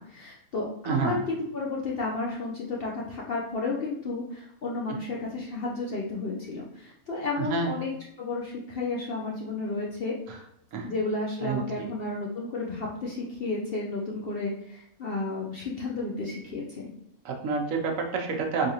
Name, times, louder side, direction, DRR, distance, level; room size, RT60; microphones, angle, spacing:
voice 1, 0.0-7.9 8.2-10.1 10.8-16.9, left 3 dB, 60° left, -3 dB, 0.6 m, -32 dB
voice 2, 0.9-1.2 7.4-7.7 10.3-10.4 10.7-10.9 11.4-11.9 17.2-18.7, right 4 dB, 70° right, 2 dB, 0.9 m, -29 dB
3.5 x 3.3 x 2.8 m, 0.79 s
omnidirectional pair, 1.5 m